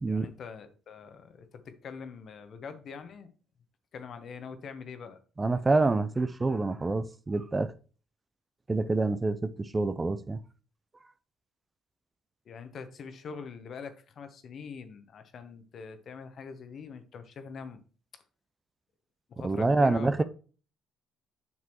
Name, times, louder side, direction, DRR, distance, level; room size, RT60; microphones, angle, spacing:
voice 1, 0.1-3.3 3.9-5.2 12.4-17.8 19.3-20.2, left 5 dB, 55° left, 1.0 m, -43 dB
voice 2, 5.4-7.7 8.7-10.4 19.4-20.2, right 3 dB, 25° right, 0.5 m, -27 dB
7.4 x 6.0 x 3.0 m
supercardioid pair, 70°, 0 cm